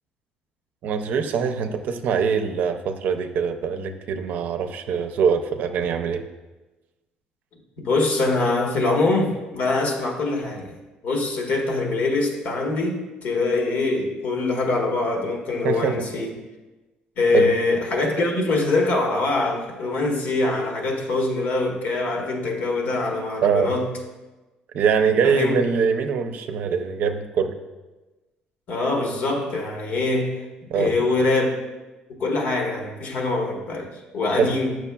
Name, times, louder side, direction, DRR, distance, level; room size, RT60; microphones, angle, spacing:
voice 1, 0.8-6.2 15.6-16.0 17.3-17.5 23.4-23.7 24.7-27.6 30.7-30.9 34.3-34.5, right 6 dB, 70° right, 7 dB, 0.5 m, -23 dB
voice 2, 7.8-10.7 11.0-16.3 17.2-23.9 25.2-25.5 28.7-30.3 30.7-31.6 32.2-34.8, left 2 dB, 70° left, 1 dB, 1.3 m, -23 dB
8.1 x 6.2 x 2.3 m, 1.1 s
cardioid pair, 95°, 3 cm